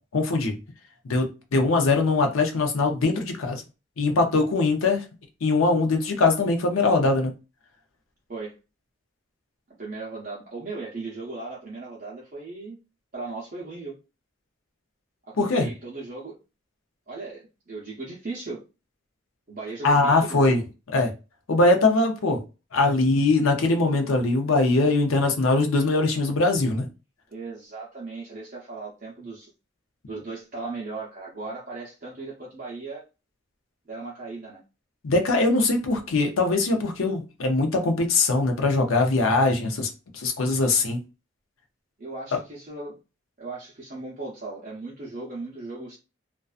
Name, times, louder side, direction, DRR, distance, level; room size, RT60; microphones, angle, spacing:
voice 1, 0.1-0.5 1.0-3.6 4.0-5.0 5.4-7.3 15.4-15.7 19.8-20.6 20.9-21.1 21.5-22.4 22.7-26.9 35.0-39.9 40.1-41.0, left 3 dB, 90° left, 0.6 m, -22 dB
voice 2, 9.8-12.8 13.1-13.9 15.4-16.3 17.1-18.6 19.5-20.6 27.3-29.5 30.1-33.0 33.9-34.6 42.0-42.9 43.4-46.0, right 3 dB, 40° right, 0.6 m, -37 dB
2.5 x 2.2 x 2.4 m
head